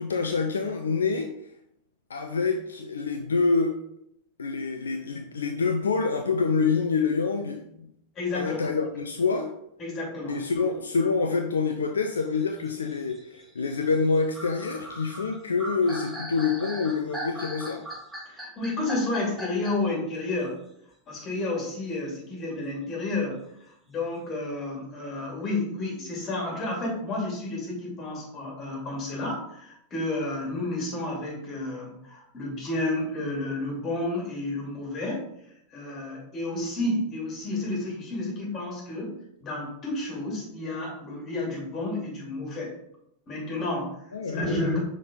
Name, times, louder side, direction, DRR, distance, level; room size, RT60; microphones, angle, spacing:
voice 1, 0.0-1.3 2.1-3.8 4.4-7.9 8.3-9.5 10.3-17.8 44.1-44.4, left 4 dB, 70° left, 5 dB, 0.4 m, -26 dB
voice 2, 8.2-8.6 9.8-10.4 18.3-20.5 21.1-23.4 23.6-35.3 35.7-39.1 39.4-42.7 43.3-44.0 44.3-44.8, left 2 dB, 30° left, -2 dB, 2.6 m, -31 dB
sound 1, 12.1-19.9, right 1 dB, 5° right, 1.6 m, -39 dB
5.6 x 4.9 x 3.8 m, 0.76 s
figure-of-eight pair, 90°, 0 cm